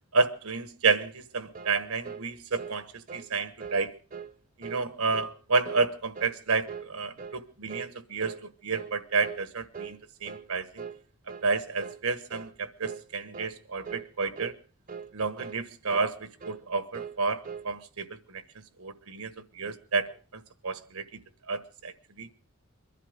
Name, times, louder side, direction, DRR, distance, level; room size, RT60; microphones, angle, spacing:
voice 1, 0.1-3.9 4.6-10.8 11.4-14.5 15.1-18.4 18.8-21.2 21.5-22.3, right 4 dB, 85° right, 1.3 m, -30 dB
sound 1, 1.5-1.8 2.0-2.3 2.6-2.8 3.1-3.3 3.6-3.8 4.1-4.3 4.6-4.8 5.1-5.4 5.6-5.9 6.1-6.4 6.7-6.9 7.2-7.4 7.7-7.9 8.2-8.4 8.7-9.0 9.2-9.4 9.7-10.0 10.2-10.5 10.8-11.0 11.3-11.5 11.8-12.0 12.3-12.5 12.8-13.0 13.3-13.6 13.8-14.1 14.4-14.6 14.9-15.1 15.4-15.6 15.9-16.1 16.4-16.6 16.9-17.2 17.4-17.7, right 6 dB, 40° right, 0.7 m, -41 dB
23.0 x 11.5 x 5.2 m
head